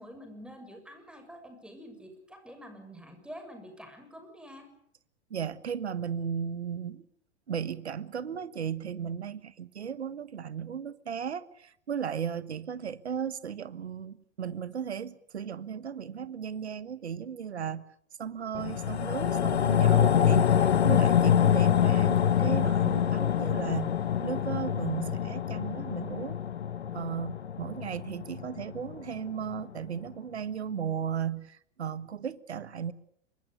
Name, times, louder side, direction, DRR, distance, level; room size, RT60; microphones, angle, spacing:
voice 1, 0.0-4.7, equal, 5° right, 6.7 m, -47 dB
voice 2, 5.3-7.0 7.5-17.8 18.2-26.4 26.9-32.9, right 7 dB, 70° right, 1.6 m, -35 dB
sound 1, 18.5-29.1 29.5-29.6, left 9 dB, 70° left, 1.5 m, -25 dB
26.5 x 24.0 x 6.7 m
figure-of-eight pair, 95°, 34 cm